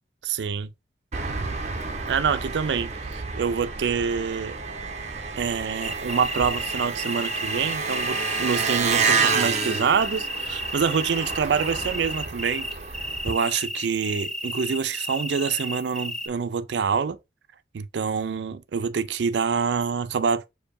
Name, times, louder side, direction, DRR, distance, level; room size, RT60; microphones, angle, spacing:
voice 1, 0.2-0.7 2.1-4.6 5.4-12.7 13.2-17.2 17.7-20.4, right 6 dB, 80° right, 0.4 m, -26 dB
Engine, 1.1-13.3, right 4 dB, 40° right, 0.6 m, -29 dB
sound 1, 5.8-16.3, equal, 5° left, 0.4 m, -33 dB
6.6 x 2.7 x 2.6 m
head